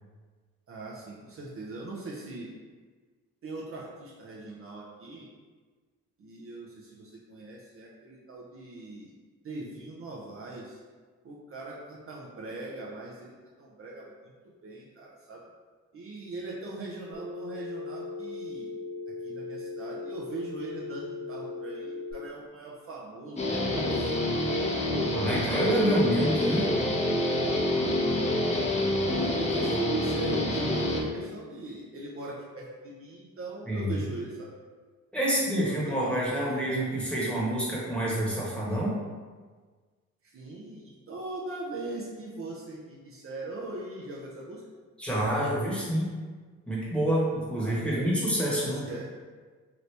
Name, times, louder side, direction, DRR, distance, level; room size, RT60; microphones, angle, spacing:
voice 1, 0.7-2.5 3.4-5.3 6.2-9.1 9.4-10.8 11.2-13.3 13.6-14.3 14.6-15.4 15.9-18.7 19.1-23.4 23.7-24.2 28.8-34.5 35.6-36.5 40.2-44.6 47.6-48.1 48.5-49.1, right 2 dB, 45° right, -4 dB, 0.6 m, -40 dB
Telephone, 17.1-22.1, left 3 dB, 30° right, 1.1 m, -38 dB
Guitar, 23.4-31.0, left 1 dB, 20° left, 0.6 m, -27 dB
voice 2, 25.1-26.7 33.7-34.0 35.1-39.0 45.0-46.1 46.7-48.8, right 1 dB, 5° left, -6 dB, 1.1 m, -27 dB
2.9 x 2.6 x 3.2 m, 1.4 s
cardioid pair, 90°, 30 cm